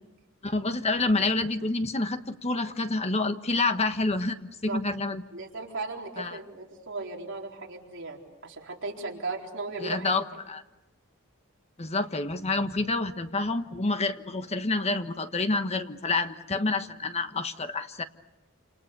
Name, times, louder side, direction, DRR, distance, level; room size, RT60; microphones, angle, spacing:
voice 1, 0.4-5.2 6.2-6.4 9.8-10.6 11.8-18.0, left 3 dB, 30° left, 9 dB, 1.2 m, -28 dB
voice 2, 5.3-10.1, right 3 dB, 60° right, -1 dB, 4.1 m, -36 dB
29.0 x 28.0 x 6.8 m, 1.0 s
head